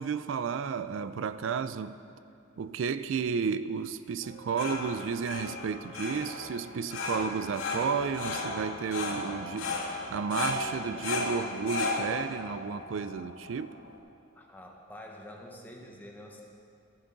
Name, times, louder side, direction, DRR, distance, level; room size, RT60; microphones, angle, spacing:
voice 1, 0.0-2.0 2.6-13.7, right 6 dB, 65° right, 13 dB, 0.3 m, -32 dB
sound 1, 4.2-13.9, left 3 dB, 85° left, 2.2 m, -35 dB
voice 2, 14.3-16.4, left 1 dB, 10° left, 0 dB, 1.1 m, -47 dB
14.0 x 9.7 x 3.9 m, 2.4 s
head